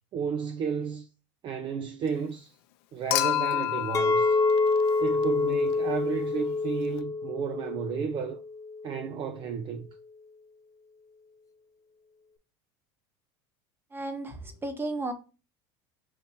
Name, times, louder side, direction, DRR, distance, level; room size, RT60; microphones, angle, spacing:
voice 1, 0.1-1.1 1.4-2.5 2.9-4.4 5.0-8.4 8.8-9.8, right 7 dB, 35° right, 0.4 m, -32 dB
Human group actions / Chink clink / Liquid, 3.1-5.5 7.0-7.1, left 13 dB, 75° left, 0.5 m, -30 dB
Chink clink, 3.9-9.1, left 3 dB, 25° left, 0.4 m, -27 dB
voice 2, 13.9-15.1, right 2 dB, 15° right, 0.9 m, -34 dB
5.6 x 2.9 x 2.6 m
supercardioid pair, 115°, 14 cm